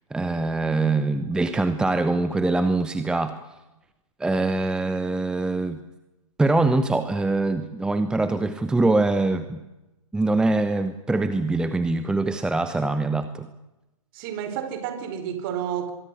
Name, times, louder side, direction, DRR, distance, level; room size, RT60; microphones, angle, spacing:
voice 1, 0.1-3.4 4.2-5.8 6.4-9.6 10.1-13.5, right 2 dB, 5° right, 0.9 m, -23 dB
voice 2, 14.1-15.9, right 9 dB, 35° right, 4.5 m, -30 dB
24.0 x 22.5 x 8.4 m
hypercardioid pair, 130°, 18 cm